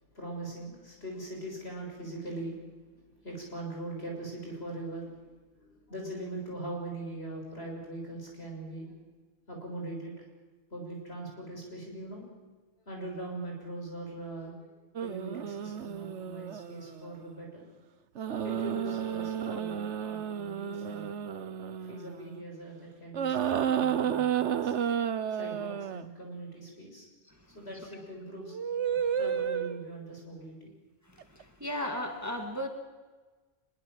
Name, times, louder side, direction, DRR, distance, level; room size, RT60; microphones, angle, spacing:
voice 1, 0.1-5.3 5.6-9.0 9.5-10.3 10.7-12.2 12.9-14.7 15.0-17.6 18.4-21.1 21.9-24.7 25.3-27.1 27.5-28.6 29.2-30.7, right 2 dB, 55° left, 0 dB, 7.2 m, -41 dB
sound 1, 15.0-17.1 18.2-22.4 23.1-26.1 28.4-30.0 31.2-31.4, right 8 dB, 65° right, 1.2 m, -32 dB
voice 2, 31.1-32.7, left 1 dB, 15° right, 4 dB, 2.0 m, -36 dB
24.0 x 22.5 x 7.6 m, 1.3 s
omnidirectional pair, 1.3 m